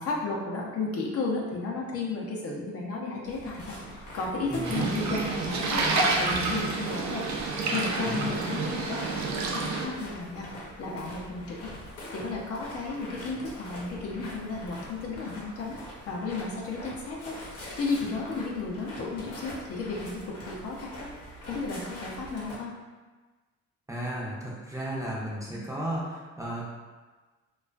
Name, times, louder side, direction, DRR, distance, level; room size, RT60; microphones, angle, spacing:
voice 1, 0.0-3.8 4.1-11.8 12.1-15.8 16.1-17.3 17.8-21.1 21.5-22.7, left 3 dB, 50° left, -3 dB, 0.6 m, -33 dB
sound 1, 3.2-22.6, left 1 dB, 85° left, 0.8 m, -43 dB
sound 2, 4.6-9.9, right 3 dB, 65° right, 0.5 m, -29 dB
voice 2, 8.0-8.3 23.9-26.7, right 1 dB, 10° right, -6 dB, 0.5 m, -34 dB
2.4 x 2.3 x 2.2 m, 1.3 s
cardioid pair, 90°, 30 cm